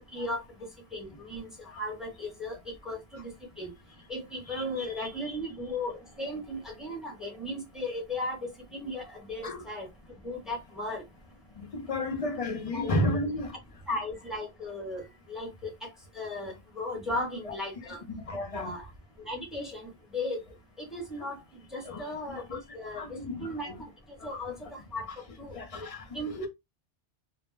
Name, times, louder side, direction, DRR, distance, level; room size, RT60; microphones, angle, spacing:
voice 1, 0.1-0.4 0.9-2.6 2.8-3.7 4.1-9.9 10.2-11.0 12.7-12.9 13.9-15.7 16.1-18.0 18.5-18.9 19.2-20.4 20.8-23.0 23.4-23.7 24.2-24.5 24.9-25.1 25.4-25.5 26.1-26.5, left 1 dB, ahead, 0.7 m, -36 dB
voice 2, 4.5-5.4 9.4-9.6 11.6-13.5 17.1-17.5 18.1-18.7 21.8-22.6 23.0-23.7 25.5-26.0 26.3-26.5, left 1 dB, 45° left, 0.5 m, -33 dB
2.1 x 2.1 x 3.1 m
omnidirectional pair, 1.2 m